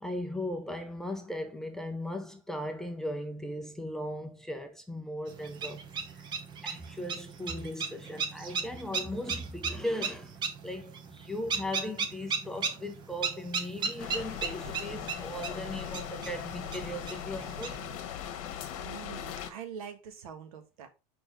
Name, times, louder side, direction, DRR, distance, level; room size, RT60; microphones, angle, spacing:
voice 1, 0.0-5.8 6.1-6.2 6.6-10.4 10.6-17.8, left 1 dB, ahead, 0.6 m, -37 dB
sound 1, 5.3-18.0, right 5 dB, 25° right, 0.9 m, -37 dB
sound 2, 14.0-19.5, left 9 dB, 60° left, 1.2 m, -39 dB
voice 2, 18.8-20.9, right 7 dB, 75° right, 1.6 m, -44 dB
5.2 x 4.0 x 4.6 m
supercardioid pair, 150°, 18 cm